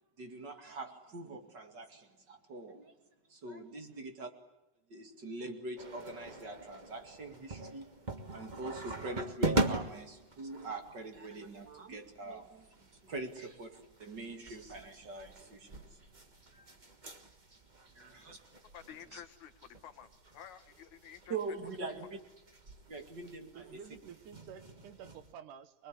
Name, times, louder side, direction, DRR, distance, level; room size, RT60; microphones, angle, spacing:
voice 1, 0.2-3.0 3.3-4.3 4.9-8.0 8.3-16.0 16.5-16.8 17.9-18.4 19.1-19.2 21.3-22.2 22.9-23.8, right 3 dB, 35° right, 6 dB, 2.5 m, -44 dB
sound 1, 5.8-25.3, right 2 dB, 55° right, 0.5 m, -42 dB
voice 2, 18.7-21.4, left 9 dB, 70° left, 8 dB, 2.6 m, -51 dB
voice 3, 23.5-25.9, right 8 dB, 80° right, 12 dB, 2.7 m, -51 dB
24.5 x 22.0 x 9.8 m, 0.92 s
omnidirectional pair, 3.7 m